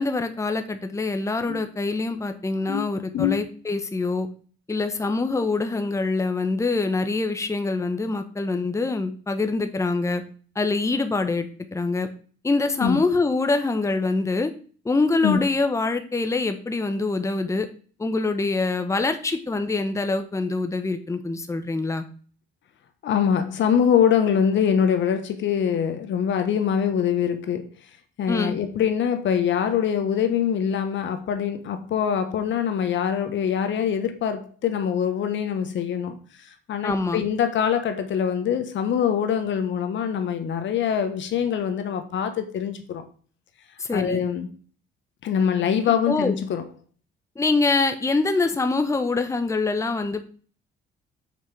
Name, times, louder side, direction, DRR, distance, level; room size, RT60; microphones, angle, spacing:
voice 1, 0.0-4.3 4.7-10.2 10.5-12.1 12.4-14.5 14.8-17.7 18.0-22.1 28.3-28.6 36.8-37.2 43.8-44.2 45.9-46.4 47.4-50.2, left 3 dB, 15° left, 0.8 m, -25 dB
voice 2, 23.0-27.6 28.2-36.2 36.4-43.0 43.9-44.5 45.2-46.6, left 8 dB, 70° left, 1.2 m, -24 dB
5.9 x 4.7 x 5.9 m
cardioid pair, 90°, 20 cm